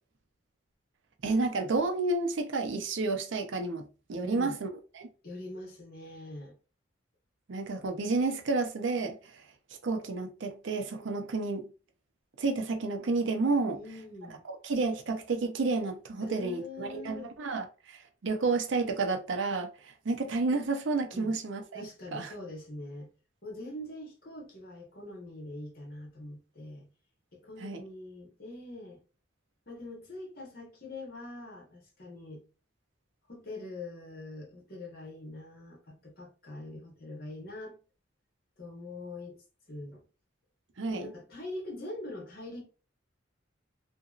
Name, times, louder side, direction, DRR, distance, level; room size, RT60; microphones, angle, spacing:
voice 1, 1.2-4.7 4.9-5.1 7.5-9.4 9.8-11.7 12.4-13.8 14.5-21.9 22.1-22.3 27.6-27.9 40.8-41.1, right 3 dB, 75° right, 0.5 m, -31 dB
voice 2, 4.2-4.6 5.2-6.5 13.7-14.4 16.2-17.4 21.1-21.3 21.7-23.1 23.4-26.9 27.3-29.0 29.7-32.4 33.3-37.8 38.6-39.4 39.7-40.0 40.9-42.6, left 2 dB, 50° left, 1.1 m, -43 dB
2.8 x 2.6 x 2.4 m
head